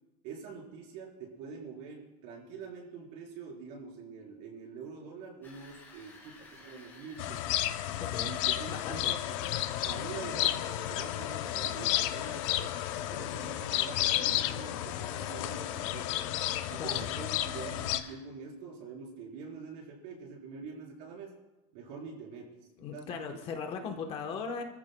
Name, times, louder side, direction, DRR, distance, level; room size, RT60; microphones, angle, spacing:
voice 1, 0.2-7.5 8.2-9.5 9.8-12.8 13.1-16.1 16.7-21.3 21.7-22.5 22.9-23.3 23.8-24.4, right 5 dB, 55° right, -1 dB, 4.3 m, -45 dB
sound 1, 5.4-18.1, left 3 dB, 10° left, 4.9 m, -54 dB
sound 2, 7.2-18.0, left 13 dB, 65° left, 0.7 m, -32 dB
voice 2, 8.0-8.3 8.7-9.1 16.8-17.1 22.8-24.6, left 6 dB, 35° left, 4 dB, 1.1 m, -38 dB
29.0 x 14.0 x 2.3 m, 1.0 s
cardioid pair, 175°, 18 cm